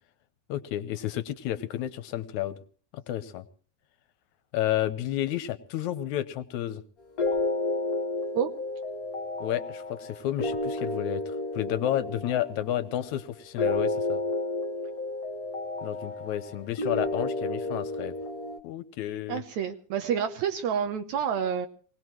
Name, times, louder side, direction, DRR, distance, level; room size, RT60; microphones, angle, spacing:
voice 1, 0.5-2.6 2.9-3.5 4.5-6.8 9.4-14.2 15.8-18.2 18.6-19.4, left 12 dB, 75° left, 12 dB, 2.3 m, -31 dB
sound 1, 7.2-18.6, left 2 dB, 40° left, 1.4 m, -31 dB
voice 2, 19.3-21.7, right 8 dB, 75° right, 6 dB, 2.2 m, -28 dB
24.5 x 19.0 x 3.1 m, 0.42 s
omnidirectional pair, 3.5 m